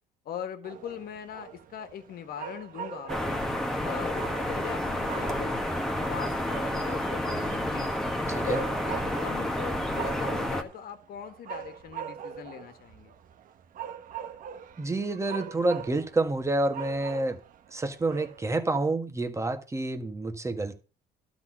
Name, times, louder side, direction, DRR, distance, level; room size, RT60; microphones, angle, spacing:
voice 1, 0.3-3.4 3.8-5.6 6.0-7.9 8.3-13.1, left 9 dB, 65° left, 1.6 m, -40 dB
sound 1, 0.6-18.7, right 9 dB, 55° right, 0.9 m, -43 dB
sound 2, 3.1-10.6, left 1 dB, 5° left, 1.4 m, -30 dB
voice 2, 8.3-8.6 14.8-17.4 17.7-20.7, right 2 dB, 15° right, 1.5 m, -28 dB
12.0 x 4.3 x 7.8 m
cardioid pair, 110°, 17 cm